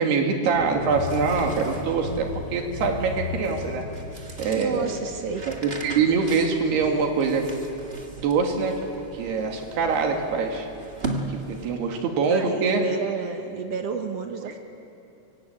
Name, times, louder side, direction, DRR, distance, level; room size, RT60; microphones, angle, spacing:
voice 1, 0.0-3.8 4.4-4.9 5.6-7.5 8.2-8.8 9.1-10.7 11.3-12.8, right 5 dB, 80° right, 2 dB, 4.3 m, -24 dB
sound 1, 0.5-6.5, left 3 dB, 45° left, 2.0 m, -36 dB
sound 2, 0.8-12.0, right 2 dB, 35° right, 0.9 m, -39 dB
voice 2, 4.5-5.5 12.3-14.6, right 6 dB, 65° right, 5 dB, 1.6 m, -32 dB
24.5 x 23.5 x 8.9 m, 2.7 s
omnidirectional pair, 4.6 m